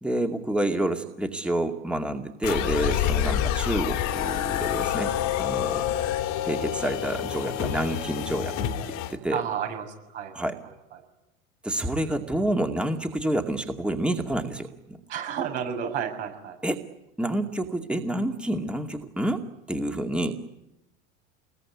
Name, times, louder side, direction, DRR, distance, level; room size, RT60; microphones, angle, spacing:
voice 1, 0.0-5.8 6.4-8.5 8.9-9.4 10.3-10.6 11.6-15.0 16.6-16.8 17.2-20.4, right 1 dB, 5° right, 4 dB, 2.2 m, -28 dB
sound 1, 2.4-9.1, left 11 dB, 50° left, 2.5 m, -27 dB
voice 2, 9.3-11.0 15.1-16.6, right 8 dB, 65° right, 4 dB, 7.1 m, -32 dB
27.5 x 21.5 x 9.7 m, 0.93 s
hypercardioid pair, 85°, 38 cm